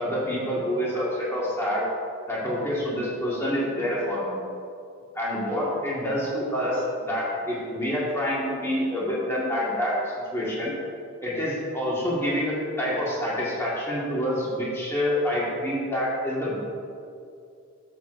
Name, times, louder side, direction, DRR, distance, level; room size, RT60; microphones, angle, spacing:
voice 1, 0.0-1.8 2.3-4.4 5.1-10.0 10.3-10.7 11.2-16.6, equal, 10° left, -7 dB, 1.6 m, -27 dB
12.0 x 7.9 x 2.6 m, 2.4 s
head